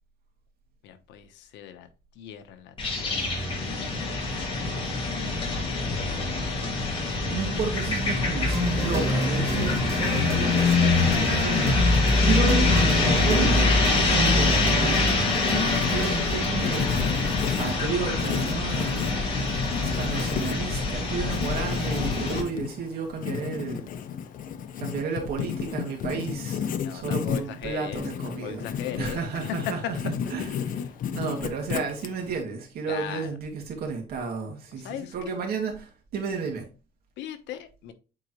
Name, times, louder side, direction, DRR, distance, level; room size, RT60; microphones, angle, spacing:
voice 1, 0.8-1.9 2.1-3.4 5.2-6.3 15.6-16.1 26.8-29.2 32.9-33.3 34.8-35.4 37.2-37.9, left 10 dB, 85° left, 1.1 m, -40 dB
sound 1, 2.8-22.4, left 3 dB, 30° left, 2.3 m, -24 dB
voice 2, 7.3-13.7 14.1-15.0 15.9-17.2 17.6-19.1 19.8-23.9 24.8-30.8 31.1-36.6, right 5 dB, 60° right, 2.3 m, -32 dB
sound 2, 8.5-16.5, right 2 dB, 15° right, 2.0 m, -34 dB
Writing, 15.3-32.4, left 8 dB, 50° left, 0.7 m, -33 dB
8.6 x 4.0 x 3.1 m
cardioid pair, 165°, 18 cm